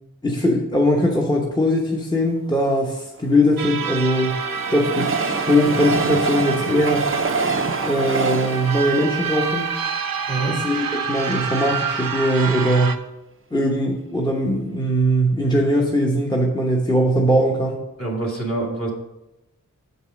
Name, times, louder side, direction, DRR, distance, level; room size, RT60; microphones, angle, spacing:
voice 1, 0.2-4.4 4.7-7.0 7.8-9.6 10.5-13.0 13.5-17.8, equal, 10° left, -1 dB, 1.0 m, -20 dB
Train, 3.2-10.5 11.0-11.1 11.3-11.4, right 4 dB, 40° right, 0.6 m, -26 dB
sound 1, 3.6-13.0, right 6 dB, 80° right, 0.6 m, -28 dB
voice 2, 10.3-10.6 18.0-18.9, right 2 dB, 40° left, -2 dB, 2.1 m, -25 dB
7.1 x 5.4 x 5.1 m, 0.93 s
wide cardioid pair, 55°, 34 cm